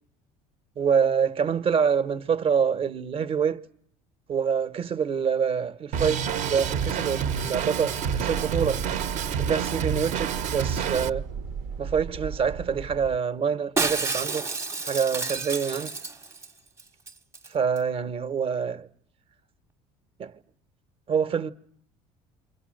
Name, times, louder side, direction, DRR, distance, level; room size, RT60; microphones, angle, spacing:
voice 1, 0.8-3.6 4.3-8.8 9.4-11.3 11.8-14.5 14.8-15.9 17.5-18.9 20.2-20.3 21.1-21.5, right 6 dB, 40° right, 1.1 m, -26 dB
Drum kit, 5.9-11.1, right 7 dB, 60° right, 1.1 m, -28 dB
sound 1, 8.0-13.2, right 5 dB, 85° right, 1.2 m, -36 dB
Shatter, 13.8-16.5 16.8-16.9 17.1-17.5 17.8-17.9, right 3 dB, 20° right, 1.0 m, -30 dB
28.5 x 24.5 x 6.5 m
cardioid pair, 110°, 14 cm